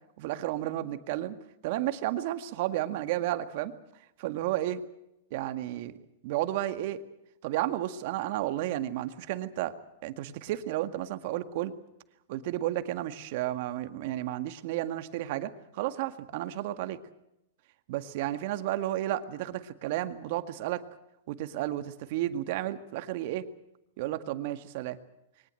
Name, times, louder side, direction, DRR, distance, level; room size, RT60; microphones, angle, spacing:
voice 1, 0.2-1.4 1.6-3.7 4.2-4.8 5.3-5.9 6.2-7.0 7.4-9.8 10.0-11.7 12.3-17.0 17.9-20.8 21.3-23.5 24.0-25.0, right 14 dB, 55° right, 10 dB, 1.9 m, -32 dB
23.0 x 19.0 x 7.8 m, 0.84 s
hypercardioid pair, 125°, 0 cm